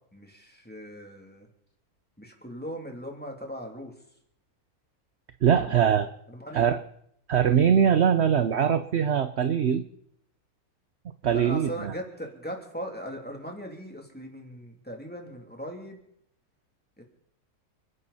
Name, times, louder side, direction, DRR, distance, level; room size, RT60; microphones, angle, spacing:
voice 1, 0.1-1.5 2.2-3.9 5.5-6.0 6.3-6.6 7.5-7.8 11.3-16.0 17.0-17.1, equal, 5° left, 1 dB, 2.9 m, -39 dB
voice 2, 5.4-6.1 6.5-6.8 7.3-9.8 11.2-11.9, right 8 dB, 55° right, 10 dB, 0.9 m, -22 dB
30.0 x 11.0 x 4.2 m, 0.70 s
omnidirectional pair, 1.7 m